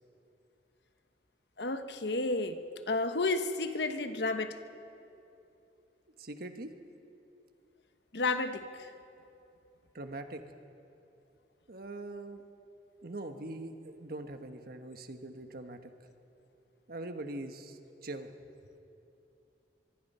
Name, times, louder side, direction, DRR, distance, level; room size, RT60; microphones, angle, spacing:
voice 1, 1.6-2.6 2.9-4.6 8.1-8.7, left 3 dB, 65° left, 8 dB, 1.1 m, -31 dB
voice 2, 6.2-6.7 9.9-10.4 11.7-12.4 13.0-15.9 16.9-18.3, right 2 dB, 55° right, 7 dB, 1.4 m, -42 dB
23.5 x 23.5 x 5.6 m, 2.8 s
head